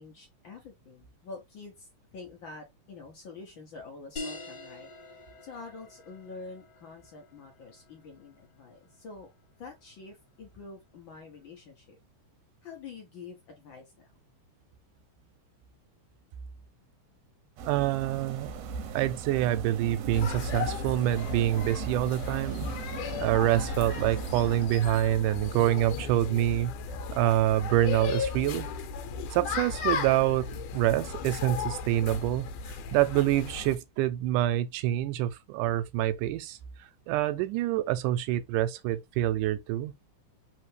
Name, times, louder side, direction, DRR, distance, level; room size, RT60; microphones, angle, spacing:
voice 1, 0.0-9.3 9.6-12.0 12.6-14.1, left 4 dB, 65° left, 1.2 m, -47 dB
sound 1, 4.2-9.2, left 2 dB, 40° left, 1.9 m, -45 dB
sound 2, 17.6-24.7, right 5 dB, 75° right, 1.6 m, -38 dB
voice 2, 17.7-18.5 18.9-22.7 23.2-26.7 27.1-28.7 29.3-30.5 30.7-32.5 32.9-36.6 37.1-39.9, right 13 dB, 90° right, 2.1 m, -26 dB
sound 3, 20.1-33.8, left 5 dB, 85° left, 2.2 m, -35 dB
4.5 x 3.3 x 3.2 m
omnidirectional pair, 3.6 m